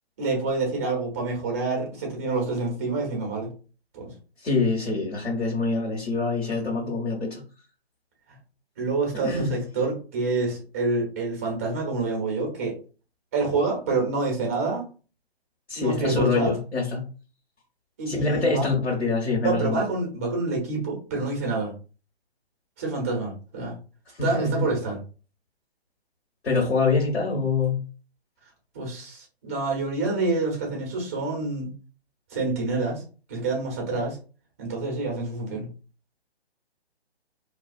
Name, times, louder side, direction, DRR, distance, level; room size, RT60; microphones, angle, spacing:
voice 1, 0.2-3.5 3.9-4.1 8.8-12.8 13.3-14.9 15.8-16.5 18.0-18.7 19.4-21.7 22.8-23.7 24.2-25.0 28.7-31.7 32.3-33.0 33.3-34.2 34.6-35.7, right 3 dB, 15° right, 0 dB, 0.5 m, -27 dB
voice 2, 4.4-7.4 9.2-9.5 15.7-17.0 18.1-19.8 24.2-24.6 26.4-27.8, left 4 dB, 75° left, -3 dB, 1.1 m, -25 dB
2.3 x 2.3 x 2.4 m, 0.36 s
figure-of-eight pair, 140°, 32 cm